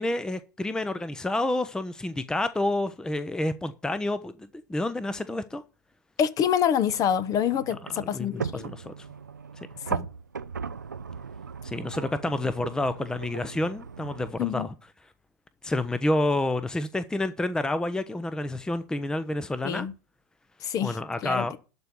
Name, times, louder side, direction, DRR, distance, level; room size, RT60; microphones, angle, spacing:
voice 1, 0.0-5.6 8.0-9.1 11.6-14.7 15.6-19.9 20.8-21.5, left 1 dB, 5° left, 0.7 m, -29 dB
voice 2, 6.2-8.7 9.9-10.1 14.4-14.7 19.6-19.9 20.6-21.4, left 9 dB, 40° left, 1.0 m, -26 dB
sound 1, 6.8-14.3, right 5 dB, 85° right, 0.5 m, -38 dB
12.0 x 4.5 x 8.1 m
figure-of-eight pair, 85°, 10 cm